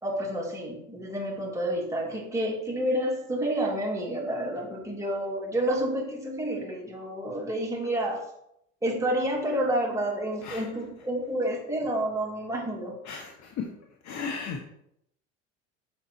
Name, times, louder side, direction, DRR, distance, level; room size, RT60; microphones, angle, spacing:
voice 1, 0.0-8.2 8.8-12.9, right 1 dB, 10° right, -2 dB, 2.5 m, -29 dB
voice 2, 13.1-13.7 14.0-14.6, left 5 dB, 50° left, 1 dB, 1.2 m, -35 dB
7.1 x 4.2 x 4.5 m, 0.76 s
hypercardioid pair, 80°, 37 cm